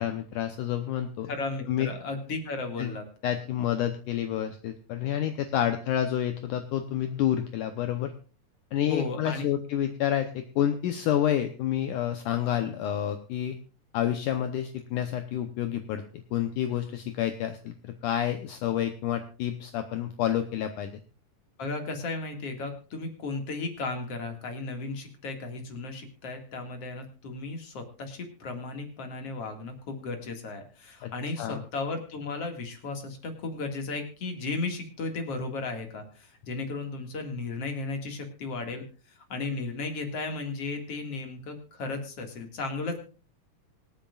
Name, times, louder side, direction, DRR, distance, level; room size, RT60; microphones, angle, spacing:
voice 1, 0.0-1.3 1.7-1.9 2.8-2.9 3.2-8.1 8.7-13.6 13.9-21.0 31.0-31.1 31.4-31.6, left 10 dB, 70° left, 7 dB, 2.2 m, -29 dB
voice 2, 1.3-3.1 8.9-9.5 21.6-38.8 39.2-43.0, left 3 dB, 45° left, 5 dB, 2.6 m, -35 dB
25.5 x 8.9 x 2.4 m, 0.37 s
omnidirectional pair, 4.1 m